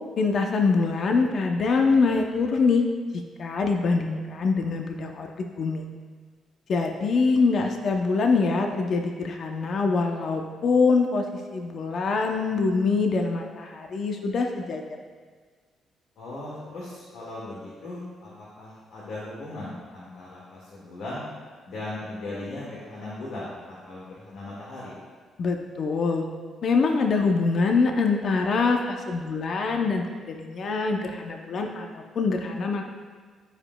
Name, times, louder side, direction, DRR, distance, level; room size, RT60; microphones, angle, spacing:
voice 1, 0.2-2.8 3.1-5.8 6.7-11.2 11.5-14.8 25.4-26.2 26.6-32.8, left 4 dB, 55° left, 3 dB, 0.7 m, -24 dB
voice 2, 16.2-21.2 21.7-24.9, left 2 dB, 75° left, -7 dB, 1.8 m, -38 dB
15.0 x 5.1 x 2.3 m, 1.5 s
cardioid pair, 90°, 0 cm